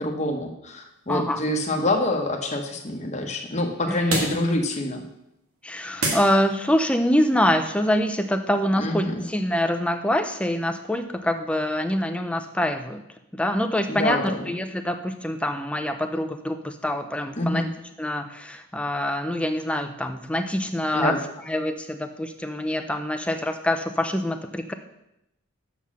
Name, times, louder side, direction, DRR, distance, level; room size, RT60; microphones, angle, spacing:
voice 1, 0.0-5.0 8.8-9.2 13.9-14.5 17.4-17.7 20.9-21.2, left 1 dB, 30° left, 3 dB, 1.0 m, -26 dB
sound 1, 0.8-6.9, right 2 dB, 85° right, 2.1 m, -35 dB
voice 2, 1.1-1.4 3.9-4.4 5.6-13.0 13.3-17.6 18.0-21.1 21.5-24.7, left 1 dB, 5° left, 7 dB, 0.4 m, -25 dB
7.0 x 5.7 x 6.2 m, 0.85 s
head